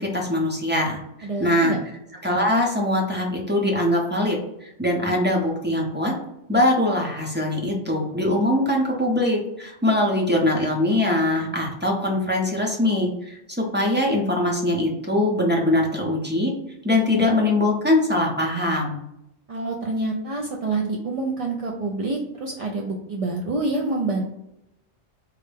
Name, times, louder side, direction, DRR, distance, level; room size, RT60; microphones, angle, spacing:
voice 1, 0.0-1.8 2.2-6.1 6.5-16.5 16.8-19.0, left 1 dB, 10° right, -1 dB, 0.6 m, -22 dB
voice 2, 1.2-1.8 5.1-5.2 19.5-24.2, right 3 dB, 60° right, -1 dB, 0.3 m, -27 dB
3.8 x 2.1 x 3.3 m, 0.84 s
omnidirectional pair, 1.1 m